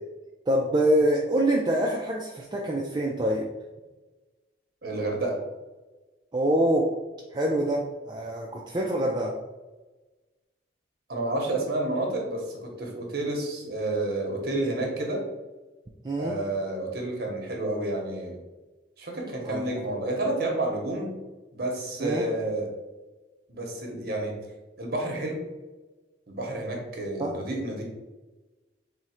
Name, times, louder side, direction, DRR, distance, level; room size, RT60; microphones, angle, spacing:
voice 1, 0.5-3.4 6.3-6.9 7.3-9.3 16.0-16.3 19.4-19.6 22.0-22.2 27.2-27.3, right 1 dB, 25° right, -2 dB, 0.3 m, -25 dB
voice 2, 4.8-5.4 11.1-15.2 16.2-18.4 19.0-21.1 21.5-22.7 23.5-24.3 24.8-25.4 26.3-27.8, right 2 dB, 55° right, 0 dB, 0.9 m, -30 dB
3.6 x 2.1 x 4.3 m, 1.2 s
head